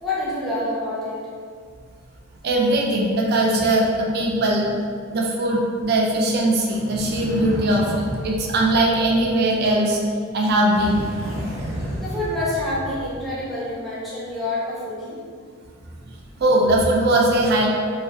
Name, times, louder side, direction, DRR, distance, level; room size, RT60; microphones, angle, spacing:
voice 1, 0.0-1.2 12.0-15.2, left 1 dB, ahead, -9 dB, 0.5 m, -27 dB
voice 2, 2.4-4.7 5.1-10.0 10.3-11.0 16.4-17.7, right 1 dB, 50° right, -1 dB, 0.3 m, -20 dB
sound 1, 6.7-9.8 10.7-13.4, equal, 90° right, 0.6 m, -32 dB
2.4 x 2.3 x 2.5 m, 2.1 s
head